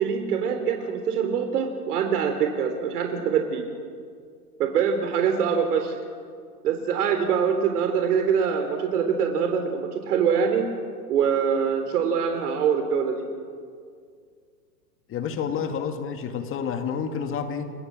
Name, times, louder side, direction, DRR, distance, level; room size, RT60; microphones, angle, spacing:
voice 1, 0.0-3.6 4.6-5.9 6.6-10.7 11.1-13.2, right 7 dB, 65° right, 5 dB, 3.6 m, -24 dB
voice 2, 15.1-17.7, left 7 dB, 25° left, 7 dB, 2.0 m, -29 dB
29.5 x 22.0 x 7.5 m, 2.1 s
hypercardioid pair, 125°, 49 cm